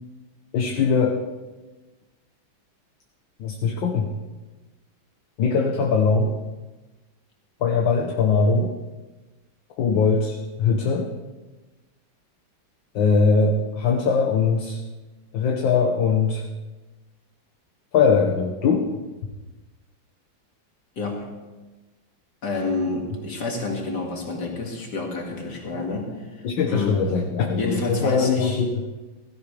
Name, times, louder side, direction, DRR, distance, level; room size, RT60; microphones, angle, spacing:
voice 1, 0.5-1.2 3.4-4.1 5.4-6.3 7.6-8.8 9.8-11.1 12.9-14.8 15.3-16.4 17.9-19.0 26.4-28.8, left 5 dB, 70° left, 1 dB, 1.8 m, -21 dB
voice 2, 21.0-21.3 22.4-27.0 27.6-28.6, left 3 dB, 55° left, 0 dB, 2.9 m, -29 dB
16.5 x 16.0 x 3.4 m, 1.2 s
omnidirectional pair, 2.2 m